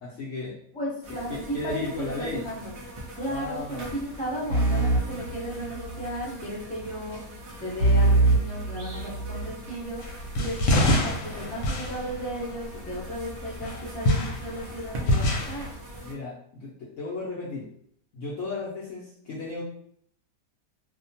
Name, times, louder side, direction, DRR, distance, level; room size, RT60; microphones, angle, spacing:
voice 1, 0.0-0.6 1.3-2.4 3.3-3.8 16.0-17.7 18.1-19.6, left 3 dB, 65° left, -6 dB, 0.8 m, -35 dB
voice 2, 0.7-2.8 3.1-7.2 7.6-10.0 10.4-15.7, equal, 10° left, -6 dB, 0.5 m, -35 dB
sound 1, 1.0-16.1, equal, 80° right, 0.5 m, -42 dB
sound 2, 4.5-6.1 7.8-9.6, right 2 dB, 55° right, 1.1 m, -23 dB
sound 3, 10.0-13.1 13.6-15.7, left 1 dB, 80° left, 1.2 m, -26 dB
2.8 x 2.1 x 2.7 m, 0.66 s
omnidirectional pair, 1.8 m